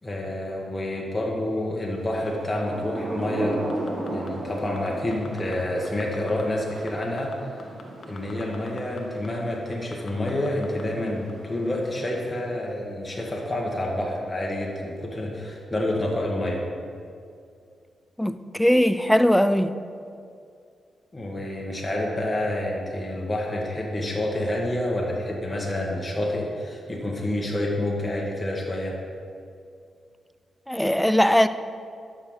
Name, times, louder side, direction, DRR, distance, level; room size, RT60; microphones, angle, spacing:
voice 1, 0.0-3.6 4.0-7.4 8.1-16.6 21.1-28.9, left 1 dB, 20° left, -2 dB, 1.7 m, -28 dB
Thunder / Rain, 2.2-12.8, right 1 dB, 65° right, 1.6 m, -36 dB
sound 1, 3.5-4.3 4.7-5.5 5.8-6.4 6.7-9.0 9.2-9.3 9.7-10.8 11.3-11.4, left 5 dB, 60° left, 1.1 m, -44 dB
voice 2, 18.2-19.7 30.7-31.5, equal, 5° left, 12 dB, 0.4 m, -20 dB
12.0 x 6.4 x 4.0 m, 2.3 s
supercardioid pair, 55°, 0 cm